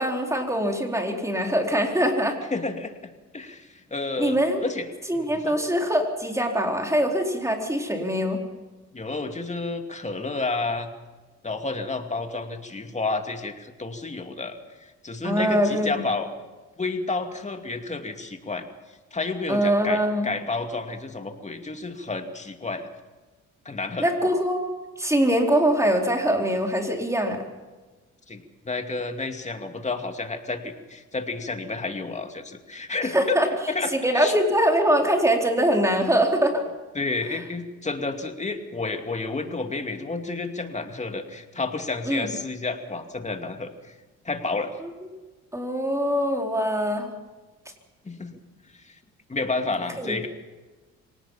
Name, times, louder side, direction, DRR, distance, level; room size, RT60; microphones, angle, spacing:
voice 1, 0.0-2.4 4.2-4.6 5.1-8.4 15.2-16.0 19.5-20.3 24.0-24.7 25.0-27.4 33.1-33.5 34.0-36.6 42.1-42.3 44.8-44.9 45.5-47.1 50.0-50.1, equal, 10° right, 2 dB, 4.3 m, -23 dB
voice 2, 2.5-5.6 8.9-10.9 11.4-16.3 16.8-18.7 19.1-22.9 23.6-24.0 28.3-33.4 33.7-34.3 36.9-43.9 44.2-44.8 48.0-48.4 48.8-49.0 49.3-50.3, left 3 dB, 25° left, 5 dB, 2.6 m, -31 dB
25.0 x 18.5 x 5.8 m, 1.3 s
cardioid pair, 90°, 30 cm